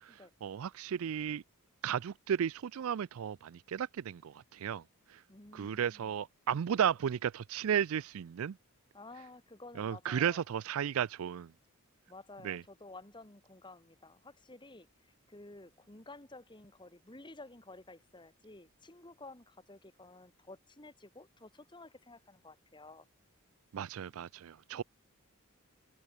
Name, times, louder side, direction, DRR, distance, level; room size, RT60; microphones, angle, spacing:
voice 1, 0.0-1.4 1.8-4.8 5.1-5.2 5.5-8.6 9.8-11.5 12.4-12.6 23.7-24.8, right 8 dB, 70° right, 0.4 m, -34 dB
voice 2, 5.3-6.1 8.9-10.4 12.1-14.9 15.3-23.1 24.7-24.8, left 2 dB, 20° left, 1.8 m, -52 dB
head